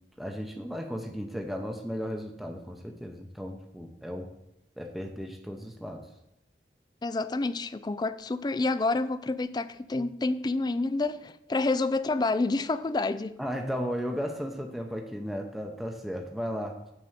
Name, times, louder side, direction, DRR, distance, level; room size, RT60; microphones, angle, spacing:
voice 1, 0.2-4.3 4.8-6.1 13.4-16.8, equal, ahead, 0.8 m, -35 dB
voice 2, 7.0-13.4, left 3 dB, 25° left, 0.3 m, -28 dB
7.7 x 5.2 x 7.4 m
head